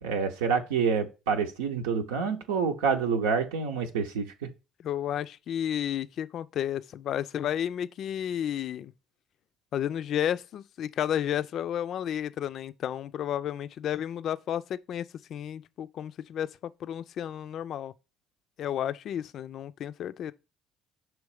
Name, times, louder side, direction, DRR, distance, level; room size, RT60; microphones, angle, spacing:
voice 1, 0.0-4.5, right 6 dB, 85° right, 0.7 m, -27 dB
voice 2, 4.8-8.9 9.7-17.9 18.6-20.3, left 10 dB, 60° left, 0.4 m, -32 dB
6.3 x 3.1 x 4.9 m
hypercardioid pair, 60°, 0 cm